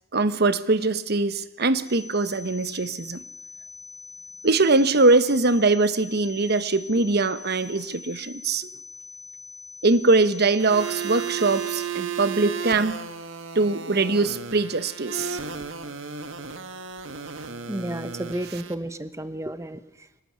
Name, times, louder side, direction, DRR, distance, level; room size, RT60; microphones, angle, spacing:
voice 1, 0.1-3.2 4.4-8.7 9.8-13.0 13.5-15.4, right 3 dB, 55° right, 13 dB, 1.1 m, -22 dB
sound 1, 1.9-11.9, left 5 dB, 20° left, 4.7 m, -44 dB
sound 2, 10.6-18.7, right 6 dB, 70° right, 1.8 m, -34 dB
voice 2, 17.7-20.2, right 1 dB, 15° right, 12 dB, 1.1 m, -32 dB
24.5 x 18.5 x 9.5 m, 0.93 s
head